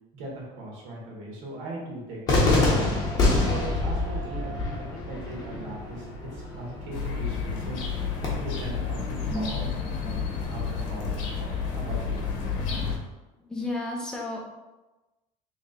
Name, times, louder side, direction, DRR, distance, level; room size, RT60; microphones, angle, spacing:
voice 1, 0.1-3.1 3.4-9.7 10.0-10.2 10.5-12.3, right 1 dB, 70° right, -3 dB, 1.4 m, -39 dB
Cheering / Fireworks, 2.3-8.3, left 2 dB, 25° left, 0.9 m, -26 dB
sound 1, 6.9-13.0, left 5 dB, 70° left, 0.9 m, -30 dB
voice 2, 13.4-14.4, left 2 dB, 5° left, -2 dB, 0.5 m, -32 dB
3.2 x 3.0 x 3.9 m, 1.1 s
cardioid pair, 180°, 15 cm